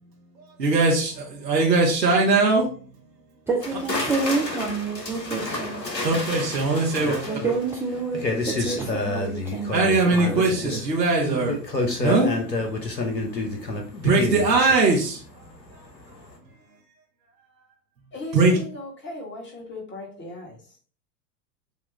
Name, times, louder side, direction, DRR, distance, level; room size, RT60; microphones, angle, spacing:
voice 1, 0.6-2.7 6.0-7.1 9.7-11.6 12.0-12.7 14.0-15.5 18.3-18.6, right 3 dB, 85° right, 1.1 m, -21 dB
voice 2, 3.5-5.8 7.0-9.9 10.3-10.7, right 4 dB, 5° right, 0.4 m, -28 dB
sound 1, 3.6-15.7 16.0-16.3, left 2 dB, 85° left, 1.0 m, -29 dB
voice 3, 18.1-20.6, left 2 dB, 20° left, 1.6 m, -37 dB
6.9 x 2.4 x 3.1 m
figure-of-eight pair, 85°, 49 cm